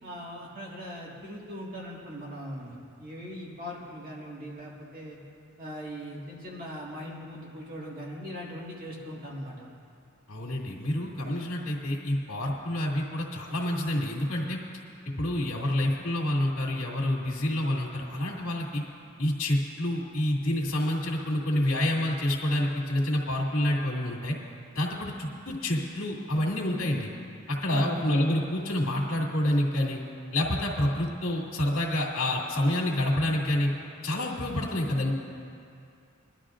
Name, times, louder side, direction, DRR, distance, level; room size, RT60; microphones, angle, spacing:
voice 1, 0.0-5.2 5.6-9.7 27.7-28.0, equal, 45° right, -4 dB, 1.9 m, -40 dB
voice 2, 10.3-14.6 15.2-18.8 19.2-24.4 24.7-27.1 27.5-30.0 30.3-33.7 34.0-35.1, left 1 dB, 70° left, -2 dB, 2.3 m, -28 dB
22.0 x 12.5 x 2.5 m, 2.4 s
head